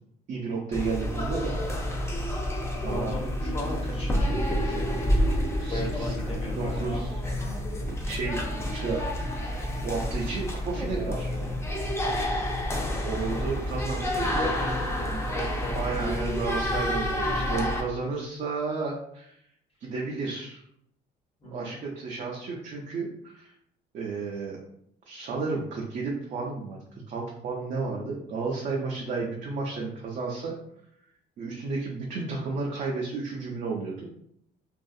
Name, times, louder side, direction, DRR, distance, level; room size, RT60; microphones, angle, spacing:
voice 1, 0.3-1.5 2.8-3.1 4.6-4.8 5.5-6.3 6.6-7.1 7.8-8.4 8.7-9.1 9.4-9.5 9.8-11.3 13.0-14.5 14.9-15.0 15.7-19.4 19.8-20.6 21.4-23.5 23.9-24.6 25.1-26.8 27.1-30.5 31.4-34.1, right 4 dB, 50° right, -2 dB, 0.5 m, -32 dB
sound 1, 0.7-17.8, equal, 15° left, 0.5 m, -29 dB
voice 2, 2.8-5.0 5.7-7.0 12.1-12.4 14.2-16.1 21.4-21.8, left 1 dB, 35° left, -2 dB, 0.9 m, -37 dB
2.6 x 2.3 x 2.3 m, 0.72 s
cardioid pair, 110°, 17 cm